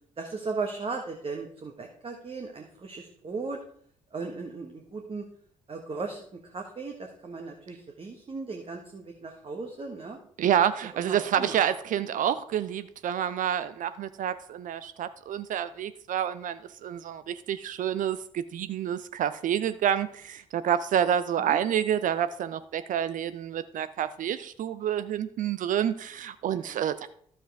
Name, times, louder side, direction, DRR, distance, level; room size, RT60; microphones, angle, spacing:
voice 1, 0.2-3.6 4.1-5.2 5.7-10.2 10.9-11.6 21.4-21.6 26.5-26.8, right 4 dB, 35° right, 3 dB, 1.3 m, -37 dB
voice 2, 10.4-27.1, right 9 dB, 50° right, 13 dB, 0.5 m, -28 dB
12.0 x 7.3 x 3.4 m, 0.63 s
figure-of-eight pair, 40°, 17 cm